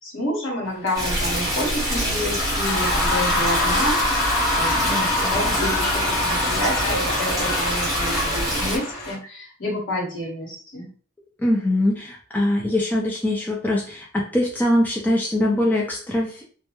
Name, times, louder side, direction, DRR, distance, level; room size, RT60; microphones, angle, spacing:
voice 1, 0.0-10.9, equal, 75° left, -2 dB, 1.1 m, -29 dB
sound 1, 0.8-9.1, left 2 dB, 55° left, 0.9 m, -25 dB
Stream, 0.9-8.8, equal, 15° right, 0.9 m, -25 dB
voice 2, 11.4-16.4, left 1 dB, 10° left, -3 dB, 0.4 m, -22 dB
2.2 x 2.0 x 2.9 m, 0.42 s
head